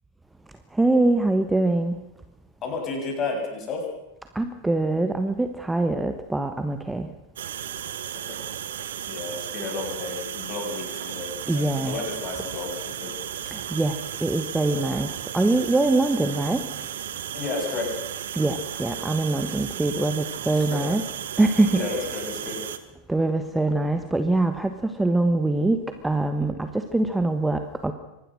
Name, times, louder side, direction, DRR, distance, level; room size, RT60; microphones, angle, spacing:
voice 1, 0.7-2.0 4.3-7.1 11.5-12.0 13.5-16.6 18.3-21.0 21.4-21.8 23.1-27.9, right 2 dB, 5° right, 8 dB, 1.3 m, -23 dB
voice 2, 2.6-3.9 9.1-13.1 17.3-17.9 20.7-20.8 21.7-22.6, left 4 dB, 30° left, 1 dB, 7.6 m, -32 dB
sound 1, 7.4-22.8, right 10 dB, 60° right, 1.7 m, -34 dB
25.0 x 19.5 x 6.4 m, 0.96 s
figure-of-eight pair, 90°, 0 cm